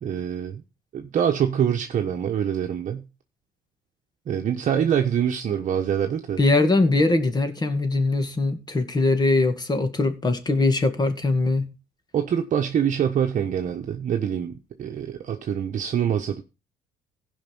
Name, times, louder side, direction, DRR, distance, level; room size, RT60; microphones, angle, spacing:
voice 1, 0.0-0.6 0.9-3.0 4.3-6.4 12.1-16.4, right 8 dB, 50° right, 1.2 m, -25 dB
voice 2, 6.4-11.7, left 2 dB, 25° left, 2.0 m, -21 dB
15.5 x 5.6 x 5.5 m
cardioid pair, 110°, 17 cm